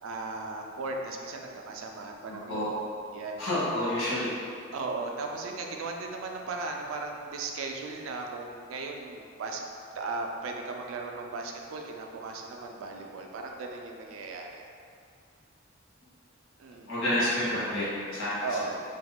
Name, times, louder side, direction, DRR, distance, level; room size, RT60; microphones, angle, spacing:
voice 1, 0.0-3.4 4.7-9.6 9.9-14.7 16.6-16.9 18.4-18.8, right 3 dB, 85° right, 2 dB, 0.4 m, -37 dB
voice 2, 2.2-2.7 3.4-4.3 16.9-18.4, left 1 dB, 70° left, -10 dB, 1.5 m, -29 dB
3.6 x 2.8 x 2.2 m, 2.3 s
head